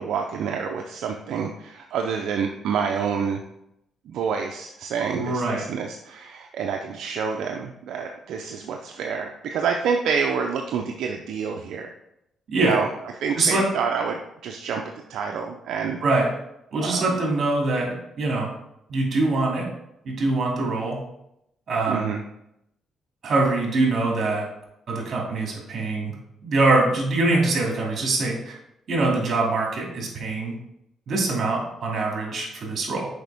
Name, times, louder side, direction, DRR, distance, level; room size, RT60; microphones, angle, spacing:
voice 1, 0.0-3.4 4.1-11.9 12.5-12.9 13.2-14.8 15.1-16.0 16.8-17.2 21.9-22.2, right 6 dB, 75° right, 3 dB, 0.5 m, -28 dB
voice 2, 5.1-5.6 12.5-12.8 13.4-13.6 16.0-16.3 16.7-18.5 18.9-19.6 20.0-21.0 21.7-22.1 23.2-24.4 24.9-26.1 26.4-28.6 28.9-30.5 31.1-33.1, right 2 dB, 50° right, -2 dB, 2.6 m, -23 dB
6.5 x 5.1 x 3.5 m, 0.81 s
cardioid pair, 90°, 0 cm